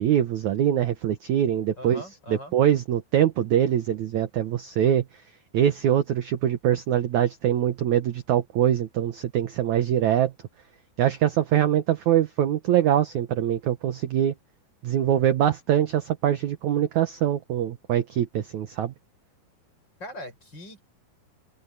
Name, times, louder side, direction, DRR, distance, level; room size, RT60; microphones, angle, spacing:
voice 1, 0.0-2.0 2.3-5.1 5.5-10.3 11.0-14.3 14.8-18.9, right 10 dB, 65° right, 1.9 m, -23 dB
voice 2, 1.8-2.5 20.0-20.8, left 1 dB, 25° left, 7.9 m, -40 dB
open air
omnidirectional pair, 4.7 m